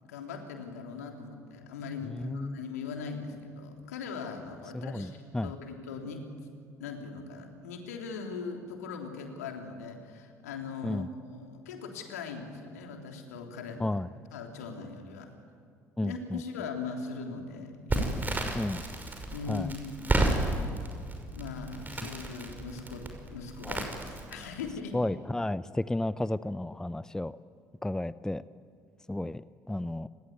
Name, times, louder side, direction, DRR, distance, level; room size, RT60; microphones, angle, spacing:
voice 1, 0.0-6.2 6.8-11.0 11.3-14.0 14.3-15.3 16.0-18.6 19.3-19.7 20.0-20.2 21.3-25.0, left 5 dB, 75° left, 3 dB, 3.4 m, -40 dB
voice 2, 2.0-2.6 4.7-5.5 10.8-11.1 13.8-14.1 16.0-16.4 18.5-18.8 19.5-19.7 22.0-22.1 23.6-23.8 24.9-27.4 27.8-28.4 29.1-30.1, left 1 dB, 5° left, 17 dB, 0.7 m, -33 dB
Crackle, 17.9-24.7, right 2 dB, 20° right, 5.9 m, -32 dB
30.0 x 21.0 x 9.6 m, 2.2 s
figure-of-eight pair, 55°, 9 cm